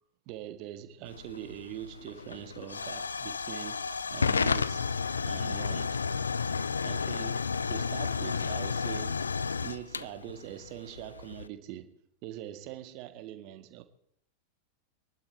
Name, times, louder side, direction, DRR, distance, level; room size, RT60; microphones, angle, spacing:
voice 1, 0.3-4.9 5.3-6.0 6.8-9.3 9.6-13.8, right 12 dB, 45° right, 1.7 m, -43 dB
Hiss / Fire / Tick, 1.1-11.5, left 5 dB, 75° left, 0.5 m, -32 dB
25.0 x 12.0 x 4.3 m
figure-of-eight pair, 90°, 0 cm